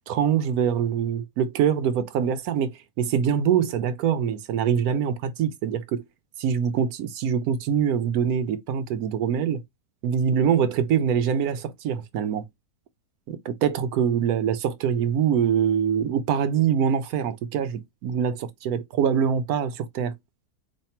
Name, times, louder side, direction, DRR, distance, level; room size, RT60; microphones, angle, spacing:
voice 1, 0.1-2.7 3.0-6.0 6.4-9.6 10.0-12.4 13.3-20.1, right 8 dB, 75° right, 1.1 m, -24 dB
3.3 x 2.2 x 4.2 m
omnidirectional pair, 1.7 m